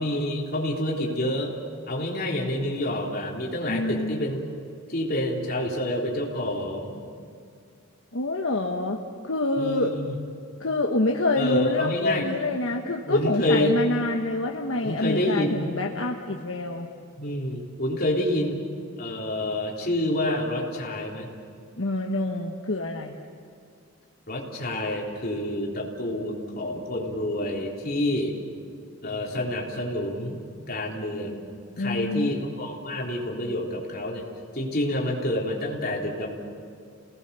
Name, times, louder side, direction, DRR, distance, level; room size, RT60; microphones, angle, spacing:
voice 1, 0.0-1.5 1.9-4.4 4.9-7.0 9.6-10.1 11.4-12.3 13.1-13.8 14.8-15.7 17.2-18.6 19.0-21.3 24.3-28.4 29.0-30.4 30.7-31.5 31.8-34.3 34.5-36.3, left 1 dB, 45° left, -2 dB, 3.7 m, -28 dB
voice 2, 3.7-4.2 8.1-9.0 9.2-10.0 10.6-16.9 21.8-23.1 31.8-32.3, left 2 dB, 65° left, 1 dB, 1.3 m, -26 dB
29.0 x 19.0 x 6.9 m, 2.3 s
head